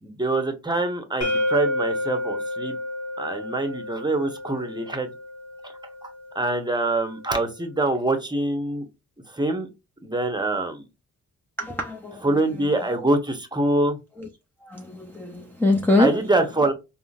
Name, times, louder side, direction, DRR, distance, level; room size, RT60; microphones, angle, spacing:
voice 1, 0.0-2.8 3.2-5.1 6.0-6.1 6.3-8.9 9.3-9.7 10.0-10.8 12.2-14.0 16.0-16.7, right 2 dB, 15° right, 0.8 m, -24 dB
sound 1, 1.2-7.0, left 1 dB, 55° left, 1.0 m, -30 dB
voice 2, 11.6-12.3 12.8-13.1 14.2-14.3 14.6-16.2, left 1 dB, 5° left, 0.5 m, -24 dB
3.7 x 2.1 x 2.3 m
cardioid pair, 65°, 32 cm